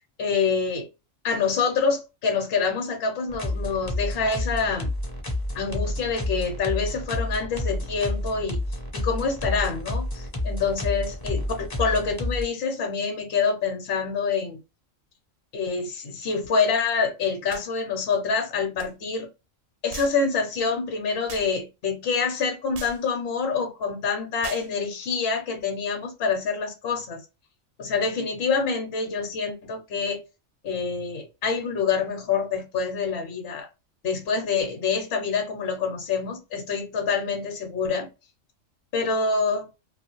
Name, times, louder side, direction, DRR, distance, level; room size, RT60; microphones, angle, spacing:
voice 1, 0.2-0.9 1.2-4.9 5.5-8.6 8.9-14.6 15.5-19.3 19.8-27.2 27.8-30.2 30.6-33.7 34.0-38.1 38.9-39.6, left 5 dB, 55° left, 0.8 m, -26 dB
sound 1, 3.3-12.4, left 1 dB, 25° left, 0.5 m, -30 dB
sound 2, 17.5-17.7 18.8-18.9 19.9-20.2 21.3-21.5 22.7-23.0 24.4-24.7, right 6 dB, 65° right, 0.8 m, -40 dB
2.7 x 2.4 x 3.0 m
omnidirectional pair, 1.4 m